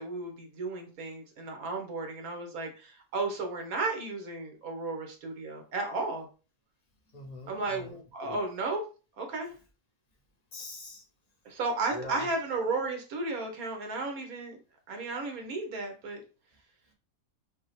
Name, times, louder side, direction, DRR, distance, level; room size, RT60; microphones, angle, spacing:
voice 1, 0.0-6.3 7.5-8.8 9.2-9.5 11.4-14.6 14.9-16.2, right 3 dB, 75° right, 3 dB, 1.4 m, -34 dB
voice 2, 7.1-8.4 10.5-11.1 11.9-12.3, left 2 dB, 35° left, 1 dB, 0.8 m, -43 dB
5.2 x 2.0 x 3.2 m, 0.35 s
omnidirectional pair, 1.5 m